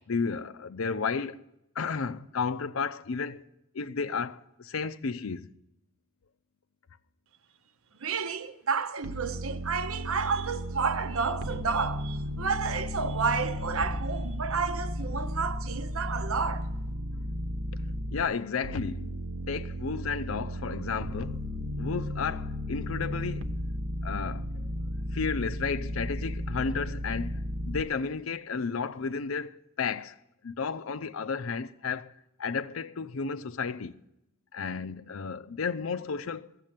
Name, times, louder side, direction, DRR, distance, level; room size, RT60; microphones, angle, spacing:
voice 1, 0.1-1.4 1.8-3.4 3.7-5.5 18.1-19.1 19.5-21.4 21.8-23.5 24.0-24.4 25.1-27.4 27.6-29.5 29.8-30.1 30.4-32.1 32.4-33.9 34.5-36.5, left 5 dB, 80° left, 0.6 m, -32 dB
voice 2, 8.0-16.7, right 5 dB, 90° right, 0.9 m, -31 dB
sound 1, 9.0-18.2 18.6-27.8, equal, 60° right, 1.0 m, -34 dB
15.0 x 7.6 x 8.9 m
head